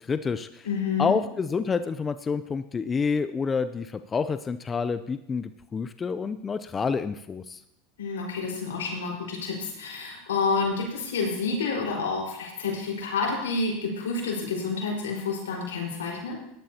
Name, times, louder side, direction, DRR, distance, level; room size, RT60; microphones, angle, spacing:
voice 1, 0.0-0.6 1.0-7.6, left 5 dB, 25° left, 11 dB, 0.5 m, -28 dB
voice 2, 0.6-1.1 8.0-16.4, left 4 dB, 90° left, -2 dB, 4.7 m, -29 dB
17.0 x 11.5 x 2.9 m, 0.80 s
hypercardioid pair, 100°, 0 cm